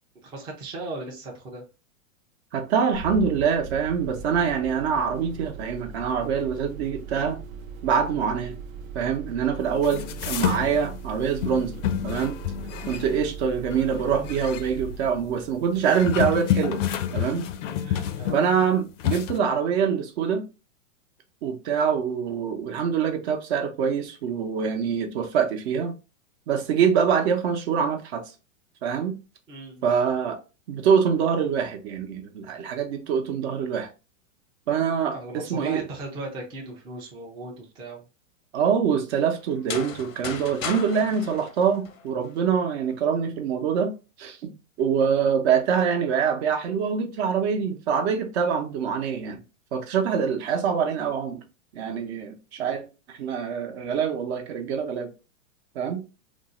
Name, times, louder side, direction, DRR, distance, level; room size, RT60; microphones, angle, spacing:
voice 1, 0.2-1.6 18.2-18.4 29.5-29.9 35.1-38.0, right 2 dB, 15° right, 0.4 m, -37 dB
voice 2, 2.5-7.4 7.8-8.6 8.9-11.8 12.0-12.4 12.8-16.8 17.1-17.5 17.9-18.0 18.3-20.5 21.4-25.9 26.5-28.2 28.8-29.1 29.8-30.4 30.7-33.9 34.7-35.8 38.5-44.5 44.8-49.4 49.7-51.4 51.7-55.1 55.7-56.0, right 7 dB, 50° right, 0.8 m, -25 dB
sound 1, 2.9-16.4, right 5 dB, 90° right, 0.7 m, -39 dB
sound 2, 9.8-11.0 11.4-13.4 13.7-14.6 15.7-18.7 19.0-19.4, left 10 dB, 65° left, 0.5 m, -29 dB
sound 3, 39.5-42.4, left 6 dB, 90° left, 0.8 m, -36 dB
2.6 x 2.0 x 3.6 m
hypercardioid pair, 135°, 40 cm